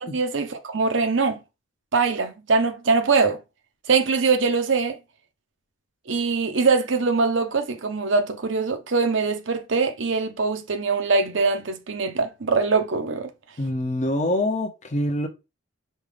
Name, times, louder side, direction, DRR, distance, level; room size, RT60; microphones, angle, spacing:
voice 1, 0.0-1.4 1.9-3.4 3.9-5.0 6.1-13.3, right 4 dB, 65° right, 0.7 m, -22 dB
voice 2, 13.6-15.3, left 1 dB, 35° left, 0.6 m, -25 dB
5.2 x 2.4 x 3.3 m
head